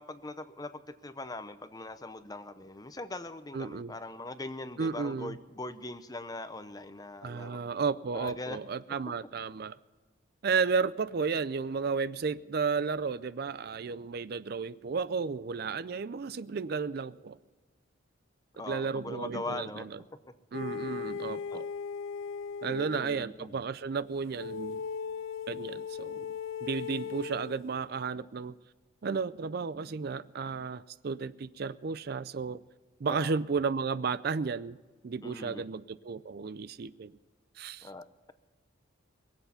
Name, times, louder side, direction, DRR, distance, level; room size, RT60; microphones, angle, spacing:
voice 1, 0.0-7.6 8.1-8.6 18.6-19.9 21.2-21.6 22.6-23.6 33.1-33.4 35.2-35.7 37.8-38.3, left 2 dB, 20° left, 11 dB, 0.7 m, -41 dB
voice 2, 3.5-3.9 4.8-5.3 7.2-9.8 10.4-17.4 18.7-19.8 20.5-21.7 22.6-24.8 25.5-26.3 26.6-28.5 29.0-32.6 33.0-34.8 35.0-37.1 37.6-37.9, right 5 dB, 50° right, 17 dB, 0.4 m, -33 dB
sound 1, 20.5-23.1 24.3-27.6, left 6 dB, 80° left, 0.4 m, -38 dB
22.5 x 8.0 x 6.9 m, 1.3 s
head